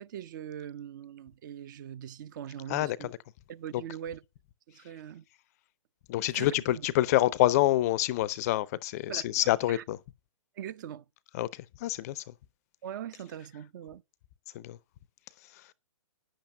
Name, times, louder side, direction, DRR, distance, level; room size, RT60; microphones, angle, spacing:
voice 1, 0.0-3.1 3.5-4.2 4.7-5.2 6.3-6.5 9.1-9.8 10.6-11.0 12.8-14.0, right 10 dB, 35° right, 0.6 m, -41 dB
voice 2, 2.7-3.1 3.7-3.8 6.1-10.0 11.3-12.2 14.5-14.8, left 15 dB, 30° left, 0.5 m, -27 dB
10.0 x 7.5 x 6.3 m
figure-of-eight pair, 130°, 17 cm